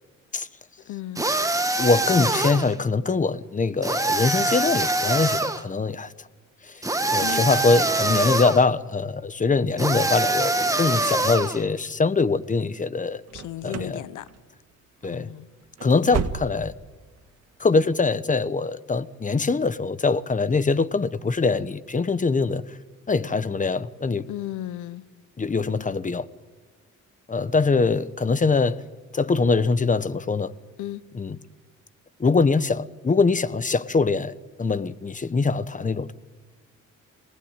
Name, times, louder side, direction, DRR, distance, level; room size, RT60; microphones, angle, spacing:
voice 1, 0.8-1.3 7.2-7.5 13.3-14.3 15.1-15.5 24.3-25.1 30.8-31.0, left 14 dB, 90° left, 1.1 m, -34 dB
sound 1, 1.2-2.7 3.8-5.6 6.8-8.6 9.8-11.6, right 2 dB, 10° right, 1.6 m, -24 dB
voice 2, 1.8-6.1 6.7-6.8 7.1-13.2 13.6-14.0 15.0-15.3 15.8-16.7 17.6-22.6 23.1-24.3 25.4-26.3 27.3-28.8 29.1-30.5 31.1-31.4 32.2-34.3 34.6-36.1, left 4 dB, 25° left, 1.2 m, -23 dB
sound 2, 13.3-14.0 14.3-14.7 15.0-15.2 15.6-16.9 17.2-17.3 17.8-17.9, right 6 dB, 60° right, 1.8 m, -32 dB
27.0 x 19.0 x 9.1 m
cardioid pair, 90°, 30 cm